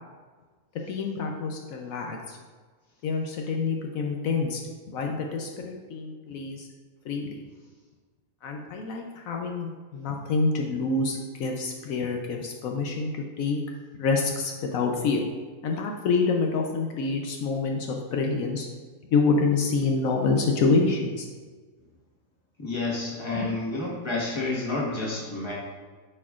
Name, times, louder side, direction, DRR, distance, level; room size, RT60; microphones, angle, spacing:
voice 1, 0.9-2.4 3.0-4.6 4.9-6.7 7.0-7.4 8.4-13.1 13.4-13.6 14.0-15.2 15.6-18.7 19.1-21.3 23.3-23.5, left 4 dB, 75° left, 1 dB, 1.0 m, -27 dB
voice 2, 22.6-25.5, left 2 dB, 20° left, -5 dB, 1.4 m, -30 dB
9.7 x 4.4 x 2.4 m, 1.4 s
omnidirectional pair, 1.5 m